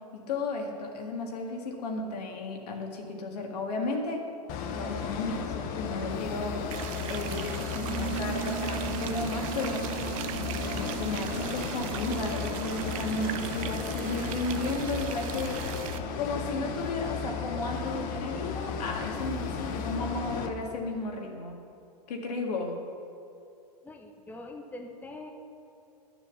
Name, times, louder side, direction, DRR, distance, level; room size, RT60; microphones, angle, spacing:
voice 1, 0.1-4.2 4.7-9.8 10.4-15.6 16.2-21.5 22.1-22.7, left 3 dB, 70° left, 1 dB, 1.9 m, -34 dB
sound 1, 4.5-20.5, left 6 dB, 40° left, 1.0 m, -35 dB
sound 2, 6.7-16.0, right 11 dB, 55° right, 0.6 m, -39 dB
Bass guitar, 7.8-17.5, right 13 dB, 35° right, 2.1 m, -41 dB
voice 2, 23.8-25.3, left 2 dB, 10° left, 3 dB, 0.9 m, -43 dB
11.5 x 7.0 x 7.1 m, 2.5 s
hypercardioid pair, 105°, 21 cm